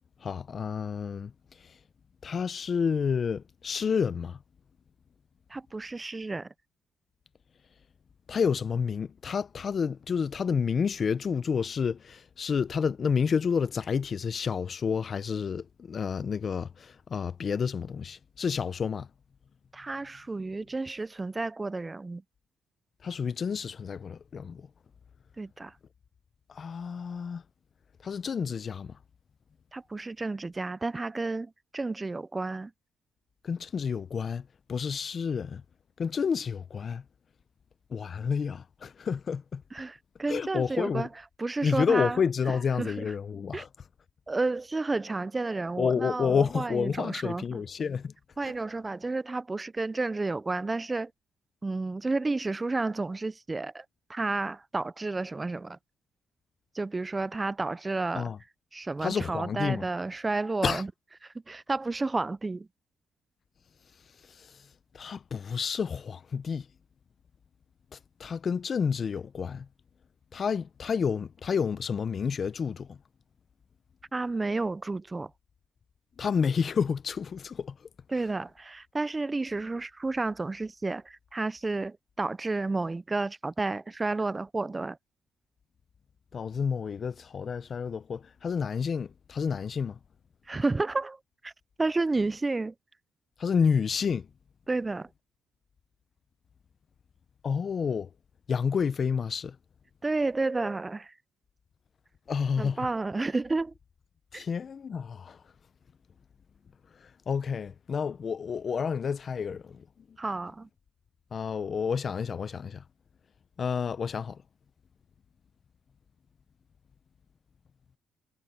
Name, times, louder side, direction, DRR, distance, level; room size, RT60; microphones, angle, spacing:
voice 1, 0.2-1.3 2.2-4.4 8.3-19.1 23.0-24.7 26.5-27.4 28.0-28.9 33.4-35.6 36.0-37.0 37.9-39.6 40.3-41.1 41.6-43.7 45.8-48.1 58.1-58.4 59.0-59.8 60.6-60.8 64.9-66.6 68.2-69.7 70.3-73.0 76.2-77.7 86.3-90.0 93.4-94.3 97.4-98.1 98.5-99.6 102.3-102.8 104.3-105.4 107.3-109.8 111.3-112.8 113.6-114.4, left 6 dB, 45° left, 0.7 m, -29 dB
voice 2, 5.5-6.5 19.7-22.2 25.4-25.8 29.7-32.7 39.7-43.1 43.5-43.7 44.3-47.6 48.4-51.1 51.6-55.8 56.7-58.3 58.7-60.9 61.2-62.7 74.1-75.3 78.1-85.0 90.5-91.5 91.8-92.7 94.7-95.1 100.0-101.1 102.6-103.7 104.3-104.5 110.2-110.7, right 3 dB, 20° right, 0.4 m, -31 dB
cardioid pair, 90°, 0 cm